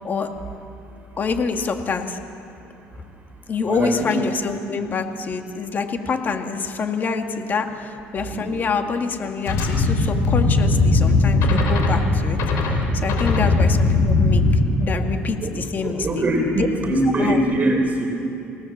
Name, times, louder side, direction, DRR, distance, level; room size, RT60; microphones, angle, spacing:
voice 1, 1.2-2.2 3.5-14.4 14.8-16.2 16.6-16.7 17.2-17.4, left 5 dB, 35° left, 5 dB, 2.2 m, -26 dB
voice 2, 3.6-4.1 8.2-8.5 15.4-15.5 15.8-18.1, right 1 dB, 30° right, 4 dB, 3.9 m, -22 dB
sound 1, 9.5-14.6, left 3 dB, 70° left, 4.9 m, -19 dB
28.0 x 18.0 x 7.4 m, 2.7 s
cardioid pair, 110°, 5 cm